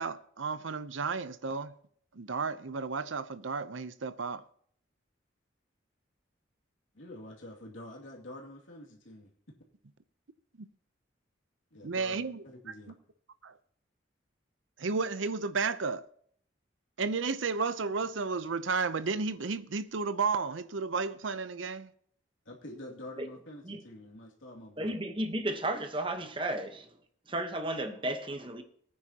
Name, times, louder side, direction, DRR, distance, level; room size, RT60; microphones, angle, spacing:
voice 1, 0.0-1.7 2.1-4.4 11.8-12.4 13.4-13.5 14.8-16.0 17.0-21.9, right 4 dB, 80° right, 0.7 m, -32 dB
voice 2, 6.9-9.3 11.7-13.0 22.5-24.9, left 1 dB, 85° left, 2.5 m, -47 dB
voice 3, 24.8-26.9 27.3-28.6, right 1 dB, 25° right, 1.1 m, -33 dB
19.0 x 9.6 x 2.9 m
head